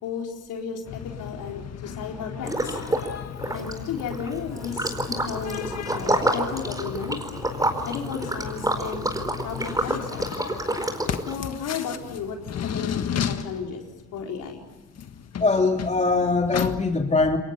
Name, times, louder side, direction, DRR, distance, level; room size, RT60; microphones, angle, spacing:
voice 1, 0.0-2.8 3.5-5.0 5.2-7.2 7.9-9.1 9.4-10.2 11.3-13.8 14.1-14.6, left 6 dB, 85° left, 1 dB, 4.4 m, -33 dB
sound 1, 0.8-16.8, left 8 dB, 55° left, 1.7 m, -34 dB
Liquid, 2.4-3.1 3.4-11.3, right 1 dB, 10° right, 4.6 m, -28 dB
voice 2, 15.4-17.4, left 3 dB, 25° left, 3 dB, 3.1 m, -22 dB
29.0 x 22.5 x 7.4 m, 1.2 s
cardioid pair, 90°, 30 cm